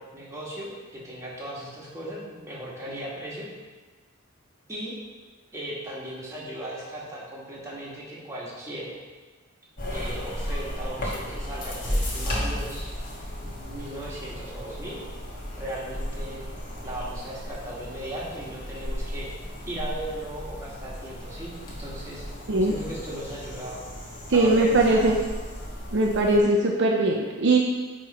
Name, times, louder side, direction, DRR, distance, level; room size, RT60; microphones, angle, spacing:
voice 1, 0.0-3.5 4.7-5.0 5.5-8.9 9.9-12.9 13.4-15.0 15.6-16.4 16.8-19.3 19.6-22.3 22.6-23.8 24.3-25.1, right 1 dB, 15° right, -6 dB, 1.4 m, -37 dB
sound 1, 9.8-26.4, equal, 45° left, 1.4 m, -34 dB
voice 2, 24.3-25.2 25.9-27.6, right 2 dB, 55° right, 0 dB, 0.6 m, -20 dB
9.5 x 3.2 x 4.1 m, 1.4 s
head